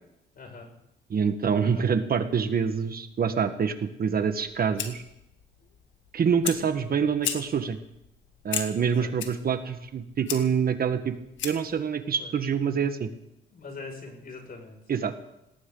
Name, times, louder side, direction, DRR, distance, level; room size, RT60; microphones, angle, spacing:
voice 1, 0.3-0.7 1.6-1.9 9.0-9.1 12.2-12.3 13.5-14.8, left 3 dB, 50° left, 2 dB, 6.0 m, -42 dB
voice 2, 1.1-5.0 6.1-7.8 8.4-11.1 11.4-13.1 14.9-15.2, right 6 dB, 50° right, 8 dB, 1.4 m, -26 dB
Fire, 4.3-11.8, left 7 dB, 70° left, 2.0 m, -37 dB
19.5 x 18.5 x 3.9 m, 0.85 s
cardioid pair, 90°, 20 cm